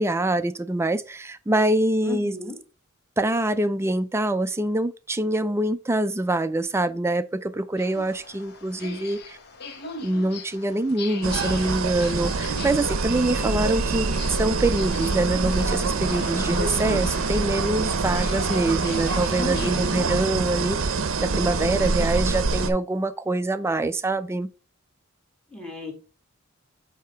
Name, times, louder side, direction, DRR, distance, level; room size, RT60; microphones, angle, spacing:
voice 1, 0.0-2.3 3.2-9.4 10.0-21.0 21.2-24.5, right 1 dB, 10° right, 0.4 m, -25 dB
voice 2, 2.0-2.6 19.4-20.1 25.5-25.9, left 1 dB, 5° left, 1.5 m, -34 dB
sound 1, 7.8-20.2, left 3 dB, 50° left, 1.0 m, -40 dB
sound 2, 11.2-22.7, right 4 dB, 65° right, 0.6 m, -25 dB
sound 3, 12.9-19.0, right 4 dB, 35° right, 0.9 m, -41 dB
8.3 x 2.8 x 4.4 m
head